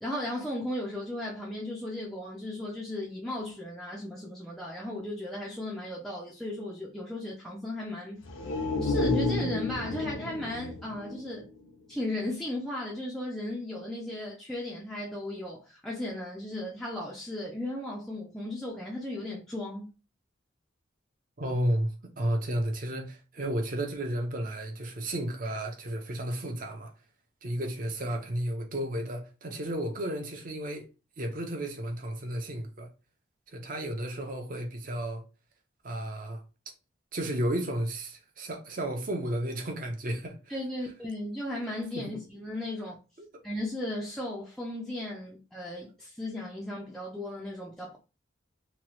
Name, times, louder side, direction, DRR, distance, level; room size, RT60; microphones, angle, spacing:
voice 1, 0.0-8.2 8.8-11.5 11.9-19.9 40.5-43.0 43.4-48.0, left 1 dB, ahead, 0.4 m, -36 dB
sound 1, 8.2-12.0 12.3-12.4, left 2 dB, 80° left, 0.7 m, -31 dB
voice 2, 21.4-26.9 27.4-30.9 31.2-32.9 33.5-35.2 35.8-36.4 37.1-40.6 41.9-42.3 43.2-43.4, right 1 dB, 45° right, 0.7 m, -33 dB
3.0 x 2.3 x 3.0 m
head